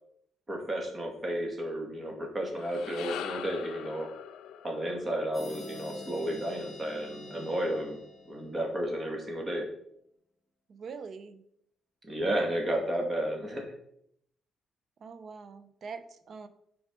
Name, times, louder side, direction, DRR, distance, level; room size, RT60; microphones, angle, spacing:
voice 1, 0.5-4.1 4.6-8.0 8.2-9.7 12.0-13.6, right 1 dB, 30° right, 1 dB, 1.9 m, -32 dB
sound 1, 2.4-6.8, left 10 dB, 85° left, 0.4 m, -43 dB
sound 2, 5.3-8.9, left 1 dB, 20° left, 2.3 m, -47 dB
voice 2, 10.7-11.4 15.0-16.5, right 5 dB, 55° right, 11 dB, 0.6 m, -43 dB
7.3 x 4.7 x 3.8 m, 0.72 s
cardioid pair, 90°, 0 cm